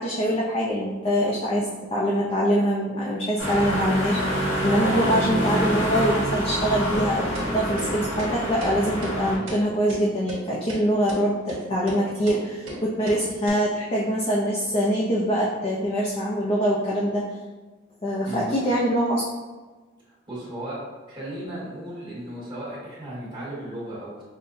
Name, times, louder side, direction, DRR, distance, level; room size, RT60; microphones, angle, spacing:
voice 1, 0.0-17.2 18.0-19.2, equal, 30° left, -5 dB, 0.4 m, -24 dB
sound 1, 3.4-9.4, equal, 85° left, 1.5 m, -26 dB
sound 2, 6.9-7.1 7.4-7.5 7.8-7.9 8.2-8.3 8.6-8.7 9.0-9.2 9.5-9.6 9.9-10.0 10.3-10.4 10.7-10.8 11.1-11.2 11.5-11.6 11.9-12.0 12.3-12.4 12.7-12.8 13.1-13.2 13.5-13.6, right 1 dB, 80° right, 1.2 m, -35 dB
voice 2, 20.3-20.8 21.1-24.2, right 1 dB, 25° right, -9 dB, 1.4 m, -35 dB
5.4 x 2.1 x 2.6 m, 1.3 s
head